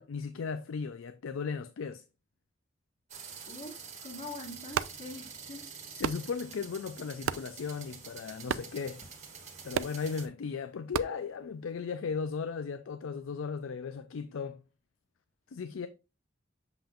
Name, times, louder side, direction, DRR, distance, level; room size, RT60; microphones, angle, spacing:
voice 1, 0.0-2.0 6.0-9.0 9.6-14.6 15.5-15.9, left 5 dB, 90° left, 0.4 m, -36 dB
sound 1, 3.1-10.3, right 6 dB, 40° right, 1.3 m, -47 dB
voice 2, 3.5-5.7, left 2 dB, 45° left, 1.7 m, -44 dB
sound 2, 4.6-12.0, right 7 dB, 85° right, 0.4 m, -39 dB
7.0 x 5.6 x 2.4 m
head